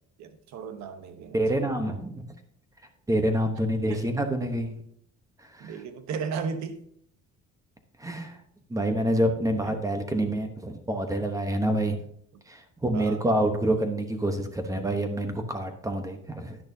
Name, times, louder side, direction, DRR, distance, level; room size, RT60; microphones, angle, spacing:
voice 1, 0.2-1.4 3.9-4.0 5.6-6.8 9.7-9.8 12.9-13.2, right 5 dB, 70° right, 1.1 m, -35 dB
voice 2, 1.3-2.2 3.1-4.7 5.4-5.8 8.0-8.4 8.7-12.0 12.5-16.6, right 1 dB, 10° right, 1.0 m, -27 dB
10.5 x 10.5 x 2.7 m
cardioid pair, 150°, 29 cm